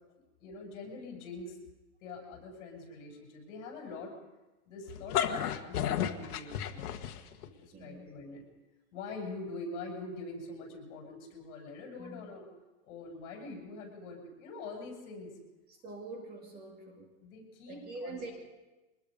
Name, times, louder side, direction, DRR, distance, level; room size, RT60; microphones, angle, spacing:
voice 1, 0.1-1.6 2.0-4.2 4.7-8.4 8.9-12.5 12.8-15.3 17.2-18.3, left 3 dB, 50° left, 0 dB, 7.9 m, -44 dB
sound 1, 4.9-7.5, left 9 dB, 80° left, 1.6 m, -32 dB
voice 2, 7.7-8.1 12.0-12.3 15.7-17.1 17.7-18.3, right 2 dB, 20° right, 2 dB, 2.2 m, -44 dB
24.0 x 20.5 x 5.4 m, 1.1 s
supercardioid pair, 160°, 45 cm